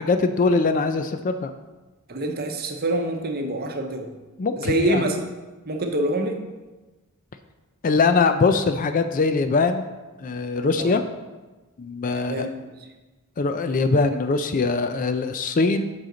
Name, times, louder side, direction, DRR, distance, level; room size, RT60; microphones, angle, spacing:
voice 1, 0.0-1.5 4.4-5.0 7.8-9.9 10.2-11.0 11.8-12.5 13.4-15.8, left 4 dB, 35° left, 9 dB, 0.4 m, -22 dB
voice 2, 2.1-4.1 4.6-5.2 5.7-6.4 10.8-11.0 12.1-12.7, right 1 dB, 45° right, 4 dB, 0.8 m, -26 dB
7.9 x 5.7 x 3.9 m, 1.2 s
head